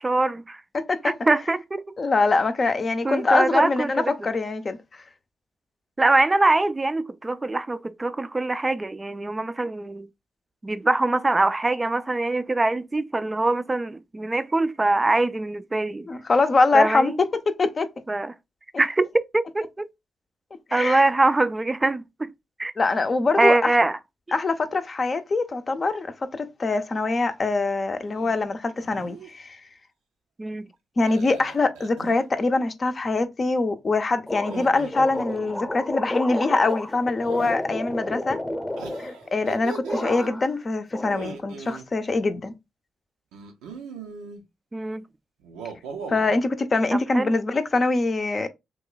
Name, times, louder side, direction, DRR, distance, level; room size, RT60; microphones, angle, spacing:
voice 1, 0.0-0.6 1.0-1.8 3.0-4.1 6.0-10.1 10.6-16.1 16.7-17.2 18.1-18.3 18.8-19.1 19.3-19.9 20.7-22.3 22.6-22.7 23.4-24.0 30.4-30.7 44.7-45.0 46.9-47.3, right 2 dB, 25° right, 0.4 m, -23 dB
voice 2, 0.7-1.1 2.0-5.0 16.1-17.9 20.7-21.1 22.8-23.8 24.3-29.6 31.0-38.4 39.0-42.5 46.1-48.5, left 3 dB, 45° left, 0.6 m, -24 dB
sound 1, 28.1-28.4 28.8-29.3 31.0-32.3 34.3-35.7 37.2-37.6 38.8-40.3 41.0-41.8 43.3-44.4 45.4-46.4, right 5 dB, 85° right, 0.5 m, -39 dB
sound 2, 34.3-39.5 39.8-40.6 40.9-41.8, left 1 dB, 15° left, 0.8 m, -32 dB
3.0 x 2.2 x 3.8 m
hypercardioid pair, 45°, 0 cm